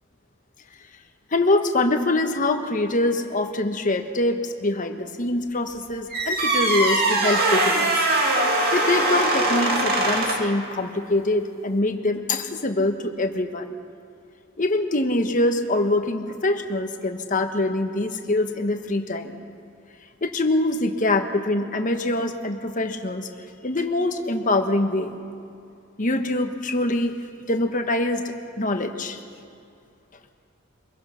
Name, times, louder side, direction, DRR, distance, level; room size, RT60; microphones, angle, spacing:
voice 1, 1.3-7.9 8.7-13.7 14.6-19.4 20.2-23.3 23.6-25.1 26.0-27.2 27.5-28.2 28.6-29.2, left 2 dB, 40° left, 6 dB, 1.2 m, -24 dB
sound 1, 6.1-10.6, right 2 dB, 50° right, 2.5 m, -22 dB
23.5 x 21.5 x 5.8 m, 2.5 s
head